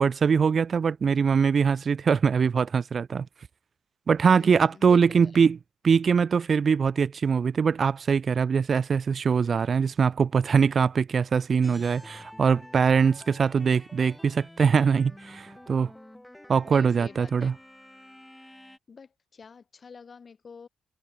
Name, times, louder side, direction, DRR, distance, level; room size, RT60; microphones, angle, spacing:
voice 1, 0.0-3.3 4.1-5.6 5.8-15.9 16.5-17.6, right 6 dB, 45° right, 0.4 m, -22 dB
voice 2, 4.4-5.3 16.6-17.5 18.9-20.7, left 5 dB, 40° left, 1.2 m, -47 dB
sound 1, 11.6-18.8, left 1 dB, 5° left, 7.5 m, -49 dB
cardioid pair, 90°, 0 cm